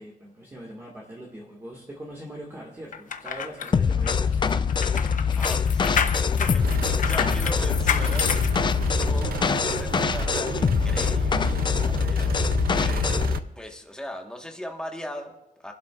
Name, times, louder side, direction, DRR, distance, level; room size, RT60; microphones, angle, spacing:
voice 1, 0.0-4.3, right 1 dB, 15° right, -3 dB, 1.7 m, -41 dB
sound 1, 2.9-9.2 9.7-9.8, left 7 dB, 60° left, 0.8 m, -30 dB
sound 2, 3.7-13.4, left 6 dB, 30° left, 0.4 m, -24 dB
voice 2, 5.3-11.5 11.8-13.1 13.5-15.7, left 1 dB, 5° left, 2 dB, 1.3 m, -40 dB
sound 3, 6.6-13.4, right 10 dB, 85° right, 0.5 m, -33 dB
29.5 x 11.5 x 2.4 m, 0.90 s
wide cardioid pair, 175°, 15 cm